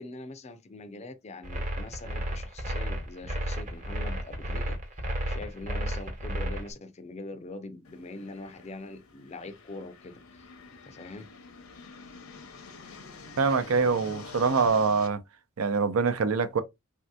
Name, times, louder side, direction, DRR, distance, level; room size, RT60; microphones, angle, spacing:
voice 1, 0.0-4.8 5.3-10.5 10.8-11.3, left 2 dB, 30° left, 0.4 m, -43 dB
sound 1, 1.4-6.7, equal, 35° right, 0.8 m, -32 dB
sound 2, 7.9-15.1, left 4 dB, 70° left, 0.7 m, -47 dB
voice 2, 13.4-15.2 15.6-16.6, right 5 dB, 75° right, 0.5 m, -24 dB
3.3 x 2.7 x 2.2 m
head